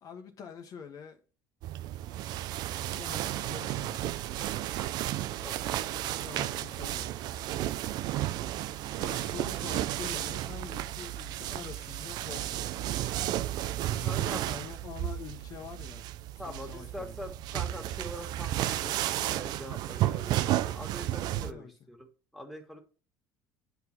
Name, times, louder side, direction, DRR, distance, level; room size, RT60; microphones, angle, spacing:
voice 1, 0.0-1.2 3.0-4.0 6.2-7.1 9.0-12.7 13.9-16.1 16.4-17.1 21.4-21.9, left 6 dB, 50° left, 1.1 m, -45 dB
sound 1, 1.6-21.5, right 13 dB, 65° right, 0.5 m, -33 dB
voice 2, 5.4-6.1 14.0-14.5 16.4-22.8, equal, ahead, 1.9 m, -44 dB
9.4 x 4.0 x 4.4 m
supercardioid pair, 90°, 8 cm